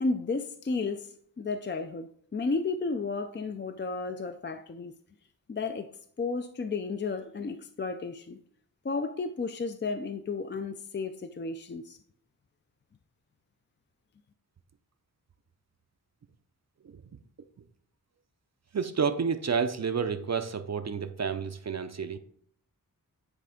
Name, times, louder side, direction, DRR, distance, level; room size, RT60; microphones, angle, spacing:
voice 1, 0.0-4.9 5.5-5.9 6.2-8.4 8.8-12.0, left 4 dB, 30° left, 0.4 m, -33 dB
voice 2, 18.7-22.2, right 6 dB, 50° right, 0.5 m, -30 dB
9.8 x 3.3 x 5.1 m
wide cardioid pair, 75°, 36 cm